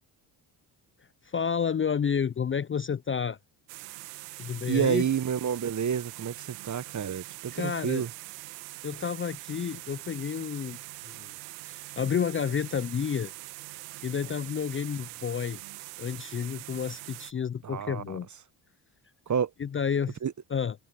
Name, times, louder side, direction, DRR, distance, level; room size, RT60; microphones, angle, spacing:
voice 1, 1.2-3.4 4.4-5.0 7.5-8.1 8.8-10.8 11.0-11.3 11.6-13.3 14.0-15.6 16.0-18.3 19.6-20.2 20.5-20.7, left 7 dB, 25° left, 0.5 m, -30 dB
sound 1, 3.7-17.3, right 22 dB, 90° right, 2.0 m, -43 dB
voice 2, 4.7-8.1 17.6-18.2 19.3-19.5 20.2-20.3, right 7 dB, 35° right, 1.1 m, -29 dB
hypercardioid pair, 55°, 50 cm